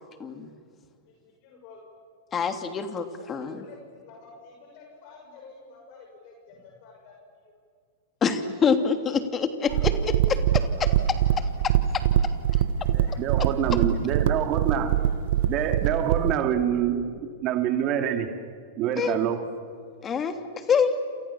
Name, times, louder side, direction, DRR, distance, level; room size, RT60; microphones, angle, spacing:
voice 1, 0.2-0.5 2.3-3.6 8.2-9.9 10.3-10.4 10.8-10.9 11.4-11.5 19.0-19.2 20.0-20.3 20.7-21.0, left 6 dB, 25° left, 8 dB, 2.9 m, -25 dB
voice 2, 1.0-1.9 3.2-7.2 8.4-8.5 9.0-9.1 9.7-9.8 13.1-13.2 15.3-15.5 16.0-16.4 18.1-18.4 19.7-19.8, left 5 dB, 50° left, 1 dB, 6.7 m, -49 dB
sound 1, 9.7-16.4, right 10 dB, 60° right, 1.3 m, -23 dB
voice 3, 12.9-15.0 15.5-18.3 18.8-19.4, right 9 dB, 40° right, 7 dB, 2.6 m, -26 dB
29.5 x 28.0 x 7.3 m, 2.1 s
hypercardioid pair, 100°, 0 cm